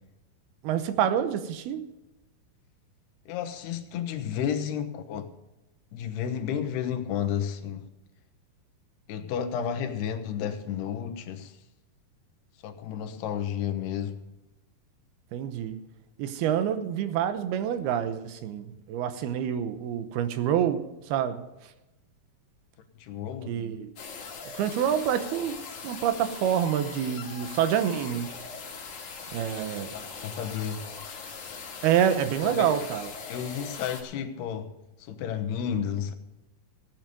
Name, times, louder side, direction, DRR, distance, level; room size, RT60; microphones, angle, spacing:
voice 1, 0.6-1.8 15.3-15.8 16.2-21.4 23.5-23.9 24.5-25.6 25.8-28.3 29.3-29.9 31.8-33.1, right 9 dB, 80° right, 2.8 m, -27 dB
voice 2, 3.3-5.3 5.9-7.9 9.1-11.6 12.6-14.2 23.0-23.6 29.9-30.9 32.4-32.7 33.3-34.7 35.0-36.1, left 8 dB, 85° left, 3.2 m, -32 dB
sound 1, 24.0-34.0, left 5 dB, 55° left, 3.4 m, -41 dB
16.0 x 9.4 x 5.2 m
omnidirectional pair, 4.5 m